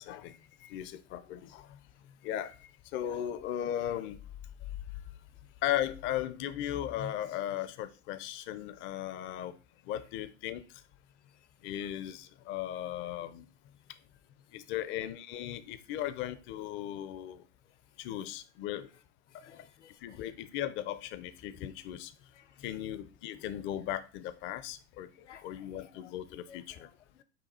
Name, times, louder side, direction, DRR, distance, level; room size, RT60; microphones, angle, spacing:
voice 1, 0.0-1.8 2.2-4.2 5.6-9.6 9.9-10.6 11.6-13.5 14.5-17.4 18.0-18.9 20.0-22.1 22.6-25.1 25.4-26.9, left 11 dB, 35° left, 0.5 m, -37 dB
voice 2, 19.4-20.3 22.4-22.5 25.2-26.1 26.5-27.2, left 9 dB, 85° left, 0.6 m, -57 dB
5.4 x 2.3 x 4.2 m
hypercardioid pair, 95°, 35 cm